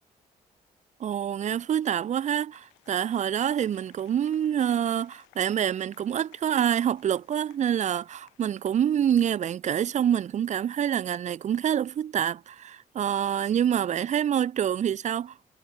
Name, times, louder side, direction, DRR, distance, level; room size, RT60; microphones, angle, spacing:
voice 1, 1.0-15.6, right 9 dB, 35° right, 0.5 m, -26 dB
Applause, 1.9-9.5, left 25 dB, 70° left, 7.4 m, -61 dB
figure-of-eight pair, 40°, 20 cm